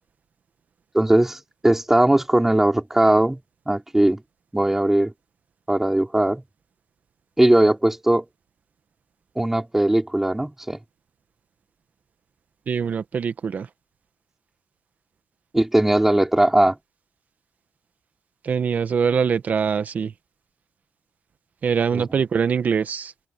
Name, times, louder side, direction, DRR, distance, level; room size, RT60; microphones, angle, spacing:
voice 1, 0.9-3.4 3.7-4.2 4.5-5.1 5.7-6.4 7.4-8.2 9.3-10.8 15.5-16.8 21.9-22.2, right 1 dB, 10° right, 5.0 m, -19 dB
voice 2, 12.7-13.7 18.4-20.1 21.6-23.1, right 6 dB, 45° right, 1.7 m, -23 dB
cardioid pair, 110°, 4 cm